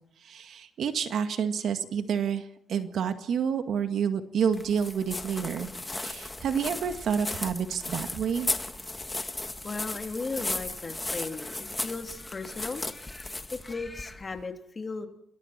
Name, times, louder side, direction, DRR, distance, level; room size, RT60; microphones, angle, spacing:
voice 1, 0.2-8.5, right 7 dB, 70° right, 7 dB, 2.0 m, -29 dB
sound 1, 4.5-14.4, left 2 dB, 15° left, 1.7 m, -36 dB
voice 2, 9.6-12.8 13.5-15.1, left 4 dB, 35° left, 4 dB, 3.3 m, -36 dB
28.0 x 21.5 x 4.5 m, 0.68 s
cardioid pair, 90°, 0 cm